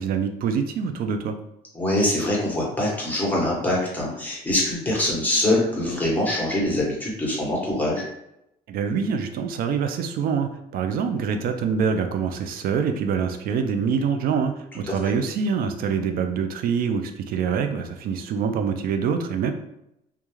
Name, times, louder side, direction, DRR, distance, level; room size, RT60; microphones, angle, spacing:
voice 1, 0.0-1.4 8.7-19.5, right 6 dB, 60° right, 6 dB, 0.4 m, -25 dB
voice 2, 1.7-8.0 14.9-15.0, left 1 dB, 10° left, -4 dB, 1.0 m, -24 dB
2.3 x 2.3 x 3.0 m, 0.81 s
cardioid pair, 110°, 17 cm